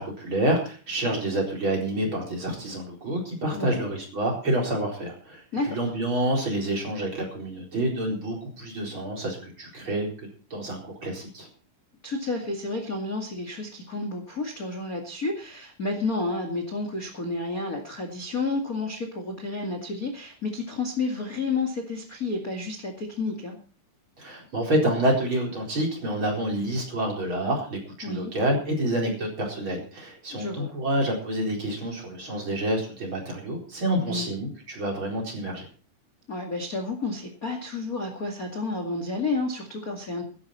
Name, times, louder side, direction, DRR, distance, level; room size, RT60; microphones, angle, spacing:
voice 1, 0.0-10.1 10.5-11.5 24.2-35.7, right 1 dB, 30° right, 0 dB, 4.7 m, -28 dB
voice 2, 3.5-3.8 5.5-5.7 12.0-23.6 28.0-28.3 30.3-30.7 34.1-34.3 36.3-40.2, left 3 dB, 30° left, 3 dB, 1.7 m, -30 dB
16.5 x 12.5 x 4.3 m, 0.38 s
omnidirectional pair, 4.8 m